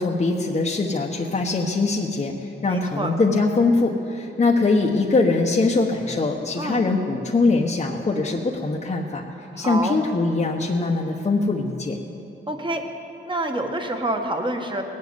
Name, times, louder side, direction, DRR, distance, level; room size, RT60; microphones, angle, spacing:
voice 1, 0.0-9.2 9.6-12.0, left 3 dB, 35° left, -1 dB, 1.1 m, -22 dB
voice 2, 2.6-3.1 6.6-6.8 9.5-10.0 12.5-12.8 13.2-14.8, right 1 dB, 25° right, 4 dB, 1.6 m, -27 dB
18.0 x 7.5 x 9.4 m, 2.8 s
cardioid pair, 85°, 21 cm